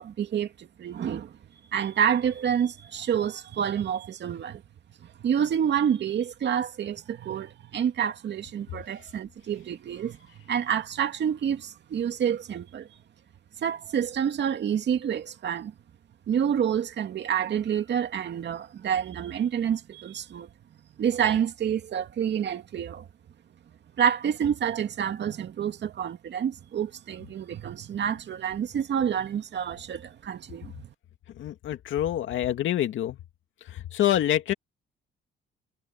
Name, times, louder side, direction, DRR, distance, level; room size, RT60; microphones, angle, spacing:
voice 1, 0.0-1.3 1.7-4.6 5.2-10.2 10.5-12.9 13.6-15.7 16.3-20.5 21.0-23.1 24.0-30.9, right 8 dB, 60° right, 2.4 m, -28 dB
voice 2, 31.4-33.2 33.7-34.5, left 12 dB, 75° left, 2.4 m, -26 dB
cardioid pair, 90°, 20 cm